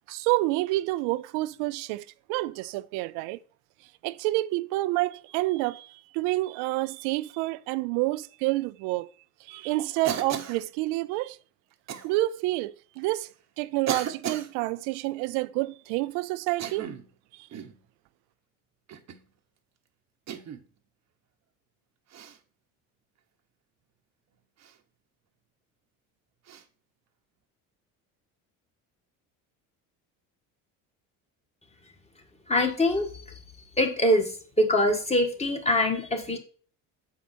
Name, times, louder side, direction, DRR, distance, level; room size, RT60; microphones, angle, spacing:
voice 1, 0.1-3.4 4.0-9.1 9.4-11.4 12.0-13.3 13.6-16.9 17.3-17.5, right 19 dB, 75° right, 0.5 m, -28 dB
Cough, 10.0-10.6 11.9-12.1 13.0-13.1 13.9-14.5 16.5-17.1 17.5-17.8 18.9-19.2 20.3-20.6 22.1-22.4 24.6-24.8 26.5-26.6, right 9 dB, 40° right, 1.0 m, -34 dB
voice 2, 32.5-33.1 33.8-36.4, left 1 dB, 15° left, 1.6 m, -24 dB
7.2 x 4.7 x 4.2 m
supercardioid pair, 85°, 40 cm